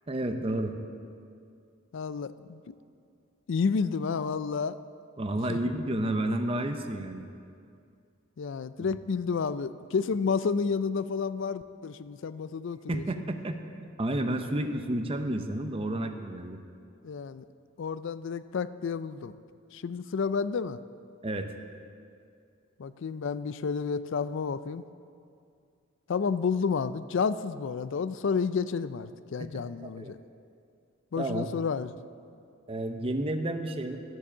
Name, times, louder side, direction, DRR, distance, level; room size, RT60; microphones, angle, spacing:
voice 1, 0.1-0.7 5.2-7.3 8.8-8.9 12.9-16.6 21.2-21.5 29.4-30.1 31.2-31.5 32.7-34.0, right 1 dB, 30° right, 6 dB, 0.7 m, -31 dB
voice 2, 1.9-2.7 3.5-4.8 5.5-5.6 8.4-13.1 17.0-17.4 17.8-19.3 19.7-20.8 22.8-24.8 26.1-30.2 31.1-31.9, left 5 dB, 65° left, 15 dB, 0.4 m, -30 dB
12.0 x 7.2 x 7.2 m, 2.3 s
head